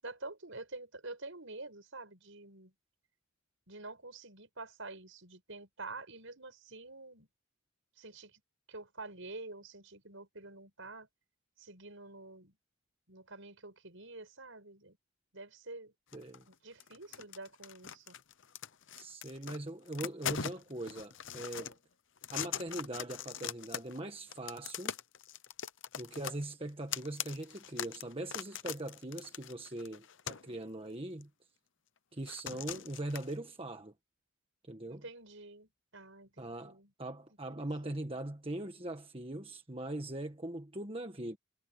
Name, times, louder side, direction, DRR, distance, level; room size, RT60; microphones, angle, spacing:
voice 1, 0.0-2.7 3.7-7.3 8.0-8.4 8.7-11.1 11.6-12.5 13.1-15.0 15.3-15.9 16.6-18.2 34.9-36.9 37.5-38.2, right 2 dB, 60° right, 7.2 m, -48 dB
sound 1, 16.1-16.5 16.8-19.6 19.8-21.7 22.2-24.0 24.3-30.5 31.2-31.3 32.3-33.3, left 8 dB, 60° left, 0.8 m, -41 dB
voice 2, 16.1-16.4 18.9-21.7 22.3-24.9 26.0-31.3 32.1-33.9 34.7-35.0 36.4-41.4, right 1 dB, 25° right, 1.5 m, -41 dB
head